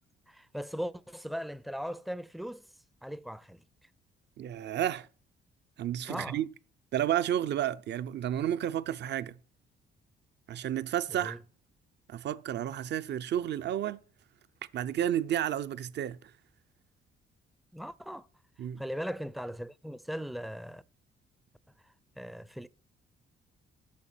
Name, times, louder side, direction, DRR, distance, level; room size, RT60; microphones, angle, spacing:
voice 1, 0.3-2.7 3.0-3.6 6.1-6.4 11.1-11.4 17.7-18.3 18.8-20.8 22.2-22.7, equal, ahead, 0.4 m, -38 dB
voice 2, 4.4-5.1 5.8-6.5 6.9-9.4 10.5-11.4 12.1-14.0 14.7-16.3 18.6-18.8, right 11 dB, 60° right, 0.6 m, -31 dB
8.5 x 6.3 x 7.5 m
cardioid pair, 90°, 20 cm